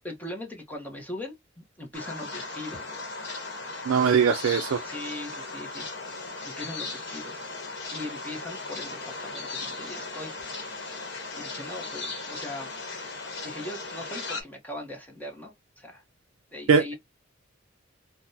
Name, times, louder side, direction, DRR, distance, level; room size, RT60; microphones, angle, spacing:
voice 1, 0.0-3.1 4.0-4.2 4.8-7.4 7.9-10.4 11.3-12.7 13.4-16.0 16.5-16.9, left 1 dB, 10° left, 0.9 m, -40 dB
sound 1, 1.9-14.4, left 3 dB, 55° left, 1.1 m, -37 dB
voice 2, 3.9-4.8 16.7-16.9, right 6 dB, 75° right, 0.4 m, -21 dB
3.3 x 2.2 x 2.6 m
head